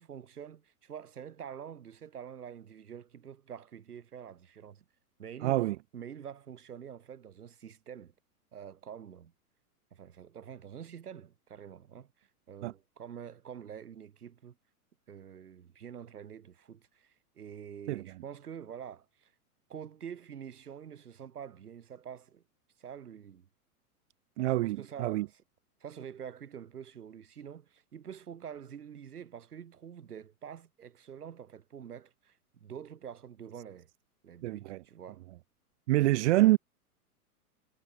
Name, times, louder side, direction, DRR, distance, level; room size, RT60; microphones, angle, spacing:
voice 1, 0.0-4.8 5.2-8.1 8.5-9.3 9.9-14.5 15.1-19.3 19.7-22.4 22.8-23.5 24.6-25.4 25.8-33.9 34.2-35.2, right 8 dB, 75° right, 4.0 m, -46 dB
voice 2, 5.4-5.8 12.6-12.7 17.9-18.0 24.4-25.3 34.4-34.8 35.9-36.6, right 17 dB, 50° right, 0.5 m, -26 dB
figure-of-eight pair, 105°, 46 cm